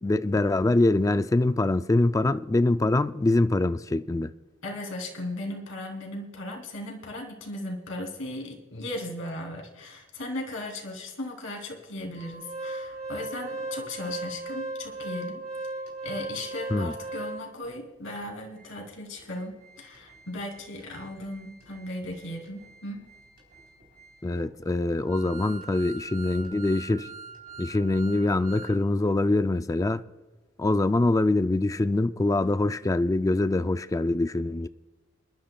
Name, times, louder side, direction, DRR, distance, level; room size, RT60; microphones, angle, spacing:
voice 1, 0.0-4.3 16.7-17.0 24.2-27.1 27.6-30.0 30.6-34.7, left 2 dB, 15° left, 0.3 m, -24 dB
voice 2, 4.6-15.4 16.0-23.0, left 1 dB, 75° left, 3.0 m, -37 dB
Organ, 12.1-17.7 18.2-18.3 18.6-18.7 19.2-28.8 29.1-29.2, right 2 dB, 45° right, 3.6 m, -39 dB
27.5 x 12.0 x 2.3 m
head